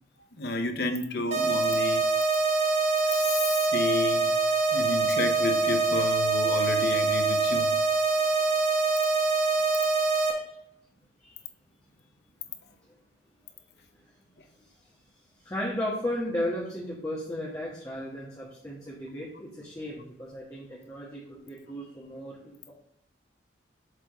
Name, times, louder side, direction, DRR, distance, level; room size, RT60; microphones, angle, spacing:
voice 1, 0.4-2.1 3.0-4.4 4.7-7.8 8.1-8.2, left 3 dB, 55° left, 0.8 m, -31 dB
sound 1, 1.3-10.3, right 3 dB, 35° right, 1.1 m, -24 dB
voice 2, 14.4-14.9 15.4-22.7, left 1 dB, 15° left, 1.3 m, -35 dB
7.7 x 3.7 x 4.7 m
head